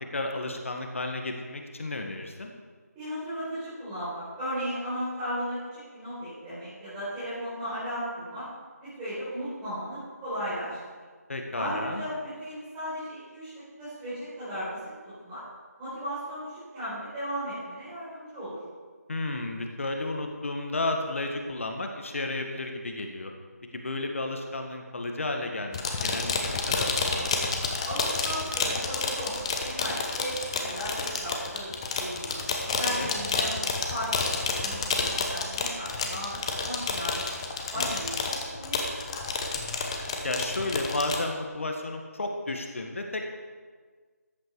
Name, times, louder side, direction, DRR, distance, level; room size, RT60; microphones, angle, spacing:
voice 1, 0.1-2.5 11.3-12.0 19.1-23.3 23.7-27.3 32.7-33.3 37.8-38.0 40.2-43.3, left 2 dB, 50° left, 3 dB, 1.7 m, -33 dB
voice 2, 2.9-8.4 8.8-10.8 11.5-14.8 15.2-15.4 15.8-18.6 27.8-32.4 32.8-34.3 34.6-37.3 37.7-39.6, equal, 10° right, -15 dB, 4.6 m, -36 dB
sound 1, 25.7-41.2, left 4 dB, 20° left, 0.9 m, -30 dB
14.0 x 9.7 x 4.8 m, 1.5 s
figure-of-eight pair, 165°, 9 cm